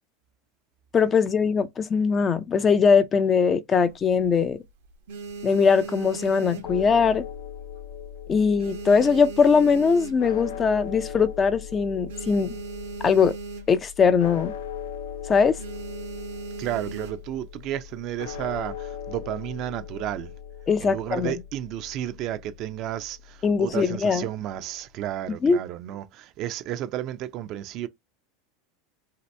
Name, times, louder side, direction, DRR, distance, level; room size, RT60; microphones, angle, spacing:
voice 1, 0.9-4.6 5.4-7.2 8.3-12.6 13.0-13.4 13.7-14.5 15.3-15.6 20.7-21.3 23.4-24.2 25.4-25.6, left 5 dB, 25° left, 0.4 m, -21 dB
sound 1, 3.8-4.5 4.9-7.4 7.7-8.1 8.3-10.6 11.1-11.2 11.3-11.5 11.8-14.0 14.3-14.5 14.9-15.1 15.6-17.4 18.1-18.7, right 4 dB, 85° right, 0.9 m, -38 dB
sound 2, 6.6-24.5, left 8 dB, 85° left, 0.4 m, -39 dB
voice 2, 16.6-20.3 20.8-27.9, right 12 dB, 50° right, 0.5 m, -32 dB
2.8 x 2.5 x 3.2 m
supercardioid pair, 120°, 0 cm